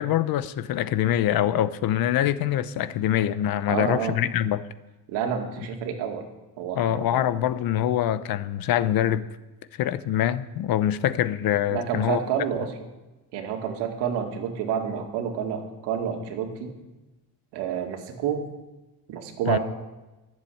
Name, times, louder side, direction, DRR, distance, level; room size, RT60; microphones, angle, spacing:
voice 1, 0.0-4.6 6.8-9.3 9.8-12.2 19.5-19.6, left 11 dB, 60° left, 0.8 m, -24 dB
voice 2, 3.7-4.2 5.1-6.2 6.6-7.2 11.7-12.7 13.3-16.7 17.5-18.4 19.1-19.6, right 8 dB, 90° right, 2.2 m, -29 dB
14.5 x 7.6 x 8.6 m
cardioid pair, 120°, 39 cm